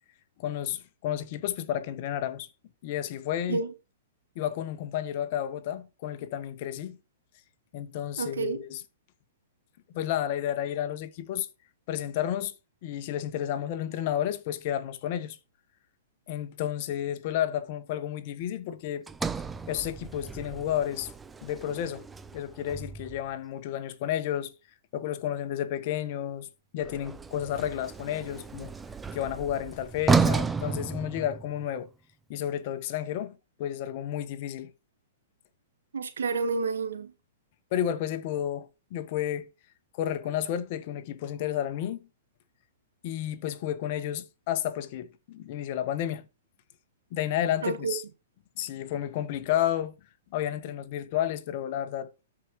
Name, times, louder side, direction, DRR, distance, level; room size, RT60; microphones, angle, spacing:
voice 1, 0.4-2.5 2.8-3.6 4.3-7.0 7.7-8.8 9.9-11.5 11.9-12.5 12.8-15.4 16.3-19.0 19.7-21.1 21.4-22.0 22.3-24.5 24.9-28.7 29.1-31.9 32.3-34.7 37.7-39.5 39.9-42.0 43.0-46.3 47.1-48.0 48.6-50.0 50.3-52.1, left 11 dB, 50° left, 1.2 m, -31 dB
voice 2, 8.2-8.6 35.9-37.1 47.6-47.9, right 4 dB, 80° right, 1.4 m, -29 dB
Sliding door, 19.1-23.3 26.8-31.7, right 4 dB, 10° right, 0.5 m, -32 dB
13.5 x 5.0 x 3.1 m
hypercardioid pair, 125°, 0 cm